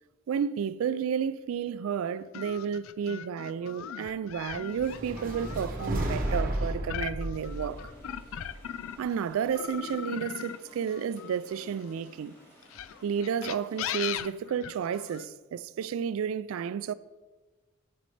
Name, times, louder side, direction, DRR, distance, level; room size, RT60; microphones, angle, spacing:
voice 1, 0.3-7.8 9.0-12.3 13.0-16.9, right 7 dB, 75° right, 0.3 m, -31 dB
sound 1, 2.3-9.1 9.5-11.9 12.6-15.2, left 9 dB, 75° left, 0.4 m, -39 dB
sound 2, 4.8-9.0, right 1 dB, 45° right, 1.2 m, -33 dB
sound 3, 7.3-14.2, equal, 15° left, 2.6 m, -56 dB
9.1 x 8.7 x 3.2 m
head